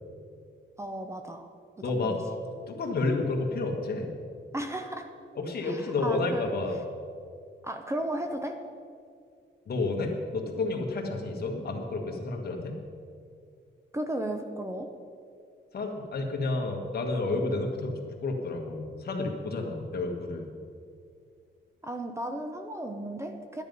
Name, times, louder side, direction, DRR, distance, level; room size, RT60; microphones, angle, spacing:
voice 1, 0.8-1.5 2.0-2.2 4.5-5.1 5.6-6.5 7.6-8.6 13.9-14.9 21.8-23.6, right 1 dB, 15° right, 5 dB, 0.7 m, -34 dB
voice 2, 1.8-2.2 2.7-4.1 5.3-6.8 9.7-12.8 15.7-20.5, left 3 dB, 50° left, 2 dB, 1.7 m, -30 dB
12.0 x 10.5 x 5.4 m, 2.3 s
wide cardioid pair, 160°, 20 cm